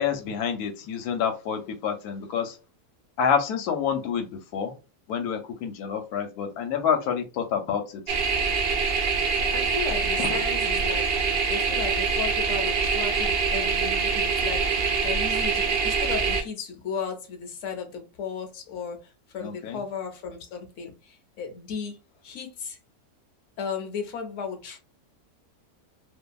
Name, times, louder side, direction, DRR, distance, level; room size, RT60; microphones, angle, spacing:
voice 1, 0.0-2.5 3.2-4.7 5.1-8.2 10.2-10.4 19.4-19.8, left 7 dB, 90° left, 1.1 m, -28 dB
sound 1, 8.1-16.4, right 5 dB, 70° right, 0.6 m, -25 dB
voice 2, 9.3-11.1 11.5-22.8 23.6-24.8, left 6 dB, 65° left, 0.9 m, -35 dB
2.7 x 2.4 x 2.3 m
omnidirectional pair, 1.6 m